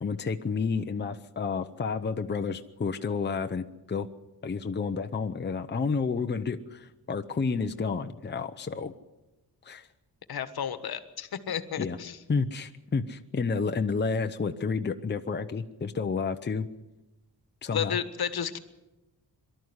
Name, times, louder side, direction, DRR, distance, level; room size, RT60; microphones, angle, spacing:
voice 1, 0.0-4.1 4.4-8.9 9.6-9.9 11.8-12.0 12.3-16.7 17.6-18.0, left 5 dB, 30° left, 7 dB, 0.9 m, -30 dB
voice 2, 10.3-12.2 17.7-18.6, left 8 dB, 75° left, 12 dB, 1.4 m, -32 dB
23.5 x 13.0 x 9.7 m, 1.0 s
wide cardioid pair, 155°, 38 cm